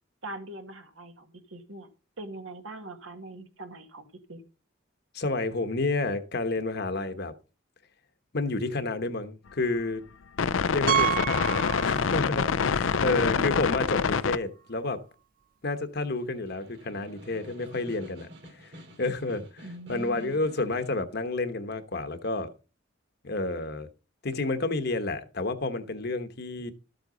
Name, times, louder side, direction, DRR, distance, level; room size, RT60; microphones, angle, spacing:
voice 1, 0.2-1.9 2.2-4.4 13.0-13.5 19.6-20.4, right 1 dB, 80° right, 1.9 m, -41 dB
voice 2, 5.1-7.3 8.3-10.0 10.7-15.0 15.6-18.3 18.5-22.5 23.2-23.9 24.2-26.7, left 2 dB, 55° left, 1.1 m, -30 dB
sound 1, 10.4-14.4, left 6 dB, 75° left, 0.5 m, -26 dB
Piano, 10.9-12.5 12.7-12.9 13.5-13.6 13.8-13.9 16.0-16.1, right 12 dB, 45° right, 0.6 m, -29 dB
Snare drum, 16.2-21.1, equal, 60° right, 3.5 m, -50 dB
13.0 x 7.9 x 3.9 m
head